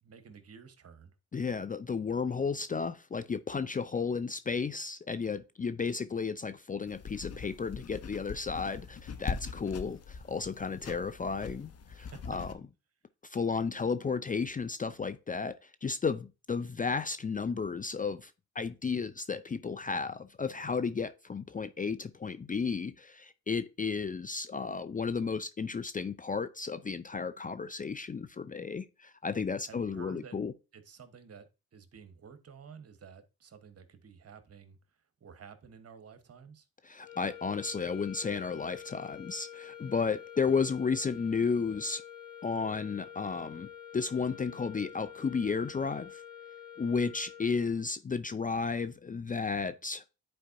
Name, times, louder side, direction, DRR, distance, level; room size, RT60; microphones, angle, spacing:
voice 1, 0.0-1.1 12.0-12.4 29.6-30.4 30.7-31.5 31.7-34.8 35.2-36.7 40.5-40.6, right 6 dB, 45° right, 1.2 m, -52 dB
voice 2, 1.3-12.5 13.2-18.3 18.6-30.5 36.8-42.0 42.4-43.7 43.9-46.2 46.8-50.0, left 5 dB, 25° left, 0.5 m, -33 dB
sound 1, 6.9-12.5, left 5 dB, 45° left, 0.9 m, -42 dB
sound 2, 37.0-47.9, left 9 dB, 75° left, 1.5 m, -48 dB
10.0 x 4.5 x 2.7 m
supercardioid pair, 55°, 34 cm